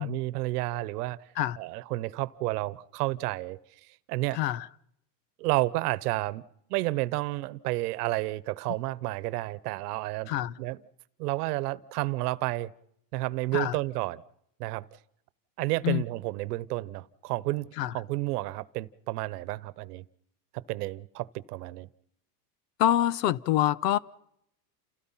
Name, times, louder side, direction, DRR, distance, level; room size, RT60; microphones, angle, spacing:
voice 1, 0.0-1.2 1.6-3.6 4.1-4.4 5.4-6.4 6.7-10.3 10.6-10.8 11.2-12.7 13.1-14.2 14.6-14.8 15.6-20.0 20.5-21.9, right 19 dB, 70° right, 1.1 m, -31 dB
voice 2, 4.3-4.7 10.3-10.5 13.5-13.7 15.8-16.0 17.8-17.9 22.8-24.0, left 13 dB, 80° left, 1.0 m, -26 dB
29.0 x 17.5 x 5.7 m
supercardioid pair, 160°, 49 cm